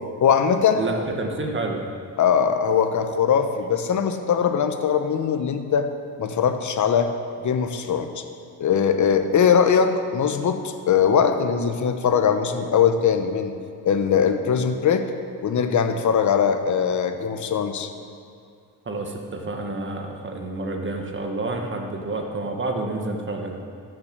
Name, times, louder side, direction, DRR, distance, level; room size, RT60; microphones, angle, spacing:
voice 1, 0.0-0.8 2.2-5.9 6.2-7.1 7.4-8.2 8.6-13.5 13.8-15.1 15.4-17.9, left 7 dB, 45° left, 8 dB, 1.0 m, -21 dB
voice 2, 0.8-1.9 18.8-23.6, right 2 dB, 30° right, 2 dB, 1.5 m, -29 dB
13.5 x 6.2 x 6.8 m, 2.3 s
cardioid pair, 95°, 41 cm